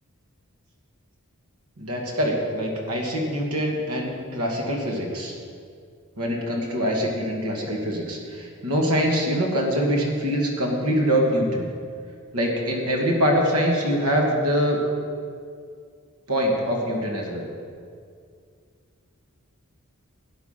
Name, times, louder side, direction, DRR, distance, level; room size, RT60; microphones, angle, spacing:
voice 1, 1.8-5.3 6.2-11.7 12.3-14.8 16.3-17.4, equal, 80° right, 0 dB, 2.4 m, -24 dB
12.0 x 10.0 x 5.9 m, 2.2 s
head